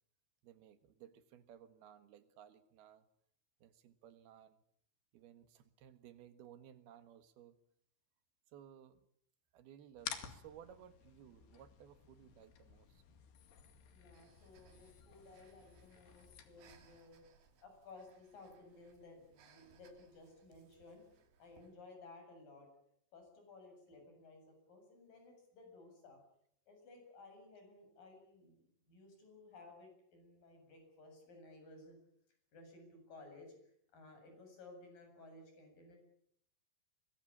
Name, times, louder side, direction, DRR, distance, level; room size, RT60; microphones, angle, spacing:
voice 1, 0.4-3.1 3.6-4.6 5.1-7.6 8.5-9.0 9.5-13.0, right 10 dB, 65° right, 11 dB, 3.2 m, -58 dB
sound 1, 10.0-17.0, left 9 dB, 65° left, 4.0 m, -52 dB
voice 2, 13.9-17.2 17.6-21.0 21.4-22.7 23.1-26.2 26.7-32.0 32.5-36.0, left 3 dB, 50° left, 4 dB, 9.4 m, -57 dB
Breathing, 14.1-21.8, right 6 dB, 80° right, 5.0 m, -69 dB
24.0 x 21.0 x 8.8 m, 0.70 s
omnidirectional pair, 5.1 m